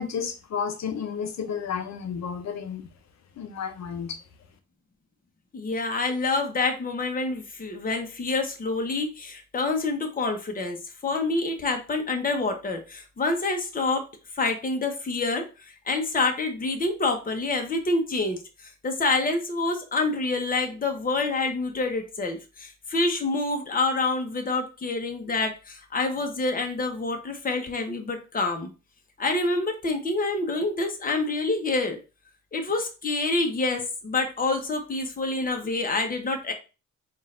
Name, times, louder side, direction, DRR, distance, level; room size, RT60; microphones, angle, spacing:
voice 1, 0.0-2.9 3.4-4.2, left 7 dB, 65° left, 0.9 m, -32 dB
voice 2, 5.5-10.8 11.0-14.0 14.3-28.7 29.2-32.0 32.5-36.5, left 3 dB, 30° left, 1.0 m, -27 dB
3.8 x 2.5 x 4.2 m
cardioid pair, 90°, 30 cm